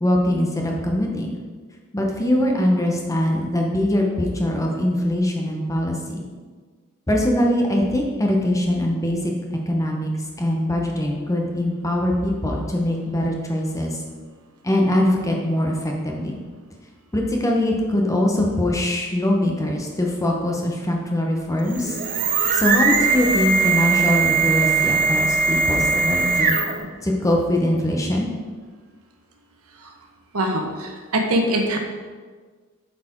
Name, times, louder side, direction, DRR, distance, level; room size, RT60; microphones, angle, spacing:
voice 1, 0.0-1.4 1.9-6.2 7.1-10.1 10.4-14.0 14.6-16.4 17.1-22.0 22.5-26.5 27.0-28.3, left 1 dB, 15° left, 0 dB, 0.8 m, -22 dB
sound 1, 21.6-26.9, right 4 dB, 40° right, 0.6 m, -20 dB
voice 2, 30.3-31.8, right 1 dB, 80° right, 3 dB, 1.0 m, -22 dB
8.1 x 4.3 x 4.4 m, 1.5 s
head